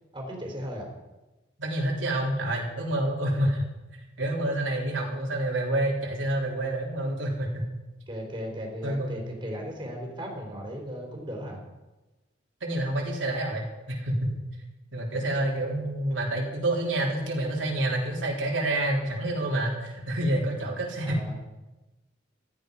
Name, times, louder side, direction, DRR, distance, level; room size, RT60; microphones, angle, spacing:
voice 1, 0.1-0.9 8.1-11.6 21.0-21.3, equal, 25° right, 0 dB, 3.9 m, -36 dB
voice 2, 1.6-3.6 4.2-7.7 8.8-9.2 12.6-14.3 14.9-21.3, right 1 dB, 90° right, -2 dB, 3.7 m, -28 dB
15.5 x 13.5 x 5.4 m, 1.1 s
head